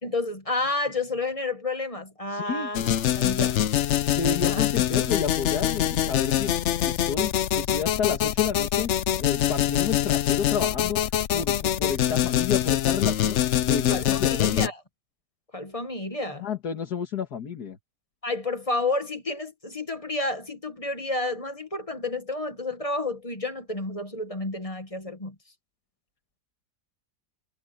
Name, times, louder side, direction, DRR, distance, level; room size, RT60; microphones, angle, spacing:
voice 1, 0.0-2.9 3.2-3.6 4.4-4.7 13.9-14.8 15.5-16.5 18.2-25.3, left 2 dB, 25° left, 1.4 m, -30 dB
voice 2, 2.3-2.7 4.1-6.5 6.8-8.9 9.2-11.0 11.3-14.7 16.4-17.8, left 6 dB, 80° left, 2.2 m, -31 dB
sound 1, 2.7-14.7, left 11 dB, 60° left, 0.8 m, -24 dB
omnidirectional pair, 1.7 m